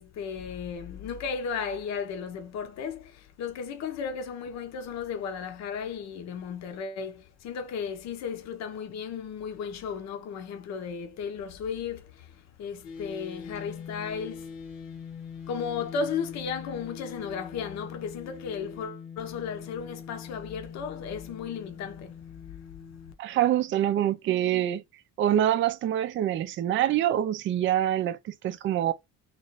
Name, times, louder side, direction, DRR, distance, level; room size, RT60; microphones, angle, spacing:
voice 1, 0.0-14.5 14.8-15.0 15.5-22.2 22.5-22.6, left 6 dB, 55° left, 0.9 m, -35 dB
sound 1, 12.8-23.1, left 6 dB, 80° left, 1.4 m, -43 dB
voice 2, 23.2-24.8 25.2-28.9, right 11 dB, 40° right, 0.4 m, -25 dB
3.3 x 3.0 x 4.0 m
cardioid pair, 175°, 33 cm